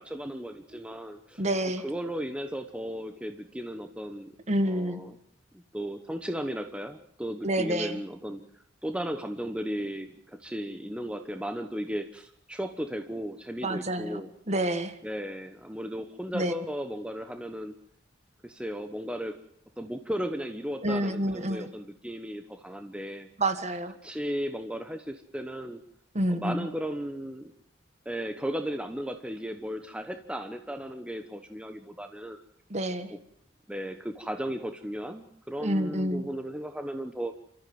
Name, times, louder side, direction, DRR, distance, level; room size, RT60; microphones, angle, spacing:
voice 1, 0.0-1.4 1.8-4.3 4.7-5.2 5.5-8.4 8.8-14.3 15.0-17.7 18.4-19.4 19.8-23.3 24.0-25.8 26.3-27.5 28.0-32.4 33.7-37.4, equal, 5° right, 7 dB, 1.1 m, -35 dB
voice 2, 1.4-1.8 4.5-5.0 7.4-8.0 13.6-15.0 16.3-16.5 20.8-21.7 23.4-23.9 26.1-26.7 32.7-33.1 35.6-36.3, right 1 dB, 40° right, 9 dB, 1.6 m, -28 dB
28.5 x 14.0 x 7.8 m, 0.71 s
head